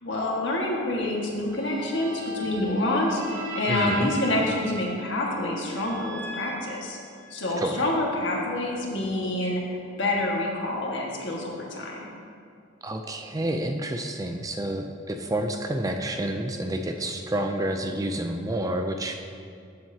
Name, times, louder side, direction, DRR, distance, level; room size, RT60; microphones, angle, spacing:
voice 1, 0.0-7.0 7.3-12.1, left 1 dB, 65° left, -2 dB, 1.7 m, -27 dB
sound 1, 1.5-7.5, right 1 dB, 85° right, 1.5 m, -39 dB
voice 2, 3.7-4.1 7.6-7.8 12.8-19.2, right 1 dB, 15° right, 4 dB, 0.4 m, -29 dB
14.5 x 7.8 x 2.8 m, 2.4 s
head